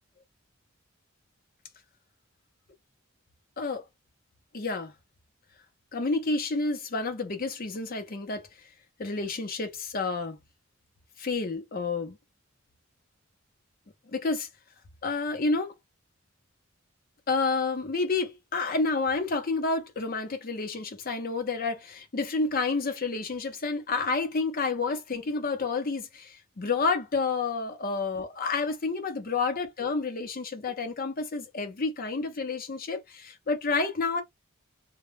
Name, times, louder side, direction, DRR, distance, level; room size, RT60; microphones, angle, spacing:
voice 1, 4.5-4.9 5.9-8.5 9.0-10.4 11.2-12.2 14.1-14.5 15.0-15.7 17.3-34.2, left 3 dB, 45° left, 0.6 m, -29 dB
2.2 x 2.1 x 3.2 m
head